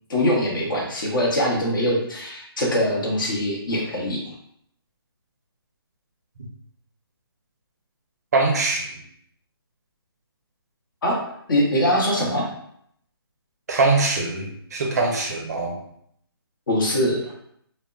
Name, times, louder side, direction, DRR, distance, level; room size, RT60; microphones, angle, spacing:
voice 1, 0.1-4.2 11.0-11.1 11.5-12.4 16.7-17.3, equal, 55° left, -2 dB, 0.9 m, -22 dB
voice 2, 8.3-9.0 13.7-15.8, right 3 dB, 40° right, 1 dB, 0.5 m, -22 dB
2.1 x 2.0 x 3.6 m, 0.70 s
hypercardioid pair, 160°, 13 cm